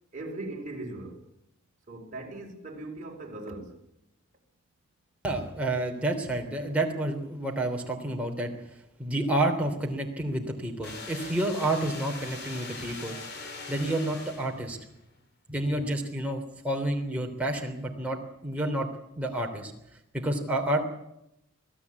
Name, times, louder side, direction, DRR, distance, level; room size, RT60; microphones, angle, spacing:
voice 1, 0.1-1.2 1.9-3.8, right 2 dB, 35° right, 4.7 m, -39 dB
voice 2, 5.2-8.5 9.0-13.2 13.7-14.8 15.5-18.9 19.2-19.7 20.1-20.8, right 1 dB, 5° right, 3.2 m, -29 dB
sound 1, 10.8-14.9, left 3 dB, 50° left, 3.2 m, -41 dB
26.0 x 17.5 x 8.5 m
head